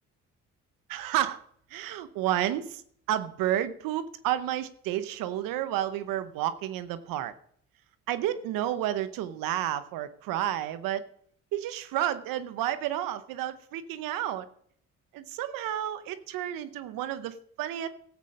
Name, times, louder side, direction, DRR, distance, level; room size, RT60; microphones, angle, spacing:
voice 1, 0.9-1.4 1.7-2.8 3.1-7.3 8.1-11.0 11.5-14.5 15.1-17.9, right 12 dB, 90° right, 13 dB, 0.9 m, -31 dB
14.0 x 8.4 x 5.3 m, 0.63 s
supercardioid pair, 50°, 33 cm